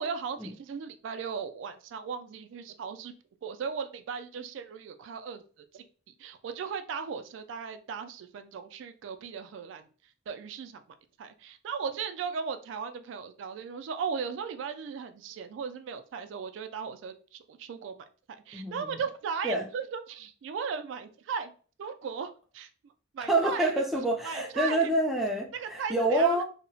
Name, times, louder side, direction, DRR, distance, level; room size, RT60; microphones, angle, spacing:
voice 1, 0.0-3.1 3.4-5.4 5.7-5.9 6.2-9.9 10.3-10.8 11.2-18.0 18.5-21.5 21.8-22.7 23.1-23.8 24.2-24.9 25.5-26.4, right 6 dB, 80° right, 0.3 m, -37 dB
voice 2, 18.5-19.0 19.4-19.7 23.2-26.4, right 1 dB, ahead, 0.3 m, -27 dB
2.8 x 2.1 x 2.6 m
head